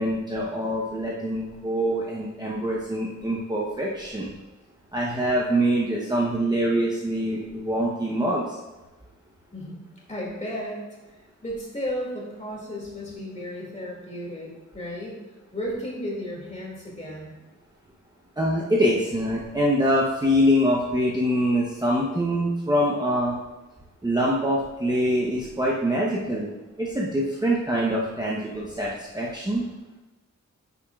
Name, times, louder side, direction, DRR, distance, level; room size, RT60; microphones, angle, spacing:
voice 1, 0.0-4.3 4.9-8.6 18.4-23.3 24.0-26.5 26.8-29.6, equal, 15° right, -4 dB, 0.8 m, -24 dB
voice 2, 10.1-15.2 15.5-17.3, equal, 25° left, -3 dB, 2.2 m, -34 dB
9.9 x 7.0 x 2.4 m, 1.1 s
wide cardioid pair, 165°, 31 cm